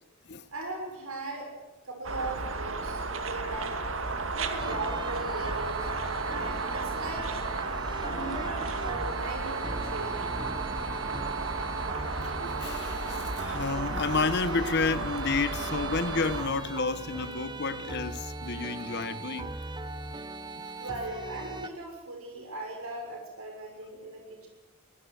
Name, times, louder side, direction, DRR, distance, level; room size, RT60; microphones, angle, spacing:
voice 1, 0.5-1.5 1.8-3.8 4.3-5.9 6.2-7.5 8.0-10.4 20.8-24.5, right 2 dB, 85° right, 6.4 m, -38 dB
sound 1, 2.0-16.5, right 3 dB, 65° right, 2.1 m, -33 dB
sound 2, 4.6-21.7, right 3 dB, 20° right, 1.1 m, -39 dB
voice 2, 12.4-19.5, left 4 dB, 55° left, 1.1 m, -30 dB
24.5 x 21.0 x 6.6 m
head